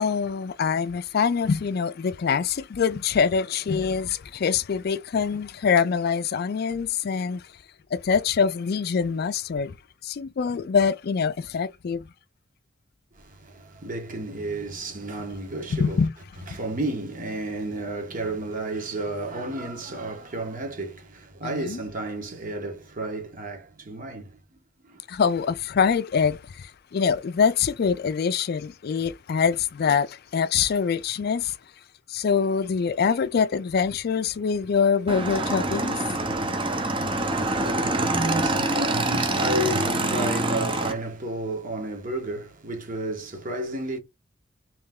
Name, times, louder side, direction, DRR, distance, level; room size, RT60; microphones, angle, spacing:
voice 1, 0.0-7.4 7.9-9.7 10.0-12.1 15.7-16.1 16.5-16.6 21.4-21.8 25.1-31.6 32.1-36.0, left 6 dB, 55° left, 0.4 m, -24 dB
voice 2, 13.1-16.0 16.5-24.6 24.9-25.0 37.2-44.0, right 1 dB, 45° right, 1.3 m, -32 dB
Motorcycle / Engine, 35.1-40.9, right 2 dB, 25° right, 0.8 m, -25 dB
3.3 x 3.1 x 3.6 m
head